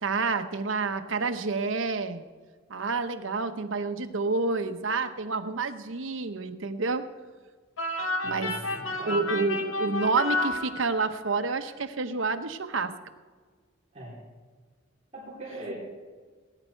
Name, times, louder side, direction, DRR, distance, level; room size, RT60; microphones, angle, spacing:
voice 1, 0.0-2.2 2.7-7.0 8.2-8.5 9.1-12.9, right 4 dB, 75° right, 8 dB, 1.0 m, -29 dB
sound 1, 7.8-11.3, left 2 dB, 90° left, 1.6 m, -31 dB
voice 2, 8.2-9.3 13.9-14.2 15.1-15.7, right 1 dB, 30° right, -7 dB, 4.2 m, -41 dB
18.5 x 10.0 x 4.6 m, 1.5 s
head